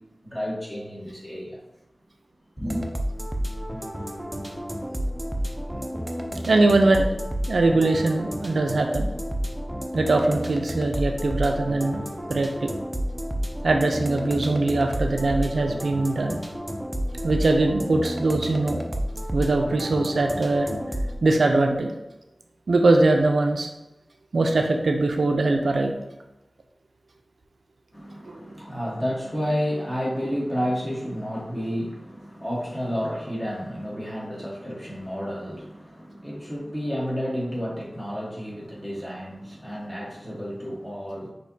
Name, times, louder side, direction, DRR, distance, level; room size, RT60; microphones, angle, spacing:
voice 1, 0.2-1.6 2.6-2.9 27.9-41.3, equal, 15° left, -4 dB, 1.3 m, -31 dB
sound 1, 2.6-21.2, equal, 15° right, 0.5 m, -31 dB
voice 2, 6.5-7.1 7.5-9.1 9.9-12.7 13.6-16.4 17.2-18.8 19.3-20.8 21.2-21.9 22.7-23.7 24.3-25.9 28.3-28.4, right 2 dB, 85° right, 3 dB, 0.4 m, -22 dB
6.2 x 2.8 x 2.7 m, 0.98 s
wide cardioid pair, 85°, 0 cm